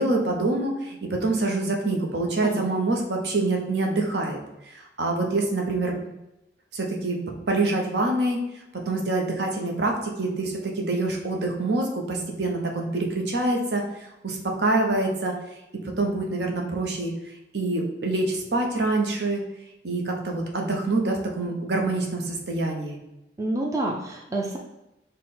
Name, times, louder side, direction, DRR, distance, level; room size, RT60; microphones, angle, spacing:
voice 1, 0.0-4.4 4.6-5.9 6.7-7.2 7.5-8.4 8.9-13.8 14.2-15.3 16.0-17.1 17.5-19.4 19.8-23.0, right 2 dB, 65° right, 1 dB, 0.8 m, -25 dB
voice 2, 23.4-24.6, right 2 dB, 15° right, -1 dB, 0.4 m, -28 dB
5.4 x 2.1 x 4.2 m, 0.94 s
head